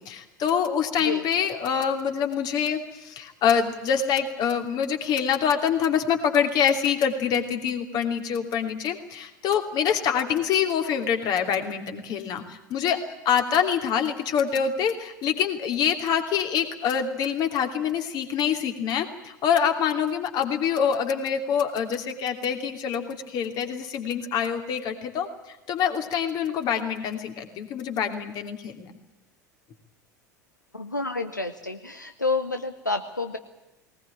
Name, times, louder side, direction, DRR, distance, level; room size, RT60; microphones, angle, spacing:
voice 1, 0.1-13.0 13.2-28.9, left 7 dB, 45° left, 6 dB, 2.9 m, -25 dB
voice 2, 30.7-33.4, left 3 dB, 90° left, 7 dB, 0.9 m, -29 dB
19.5 x 19.5 x 9.1 m, 0.98 s
figure-of-eight pair, 75°, 10 cm